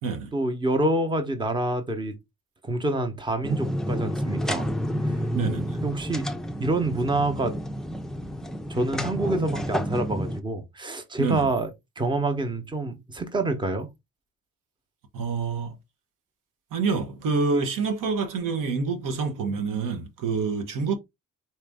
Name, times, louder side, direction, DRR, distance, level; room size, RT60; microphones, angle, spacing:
voice 1, 0.3-2.1 2.6-4.7 5.8-6.3 6.6-7.5 8.7-11.7 12.0-13.9, right 2 dB, 15° right, 0.8 m, -27 dB
sound 1, 3.4-10.4, equal, ahead, 0.4 m, -30 dB
voice 2, 5.3-5.8 11.2-11.5 15.1-15.8 16.7-21.0, right 4 dB, 80° right, 1.0 m, -27 dB
4.1 x 2.5 x 3.5 m
cardioid pair, 115°, 32 cm